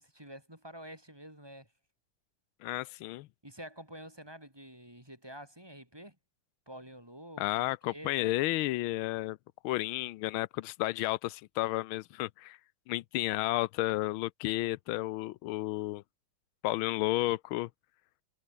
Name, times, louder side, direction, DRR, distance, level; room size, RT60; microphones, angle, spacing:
voice 1, 0.0-1.7 3.4-6.2 6.7-8.3, equal, 10° right, 3.7 m, -48 dB
voice 2, 2.6-3.3 7.4-9.4 9.6-12.6 12.9-16.0 16.6-17.7, left 17 dB, 85° left, 1.5 m, -32 dB
omnidirectional pair, 2.2 m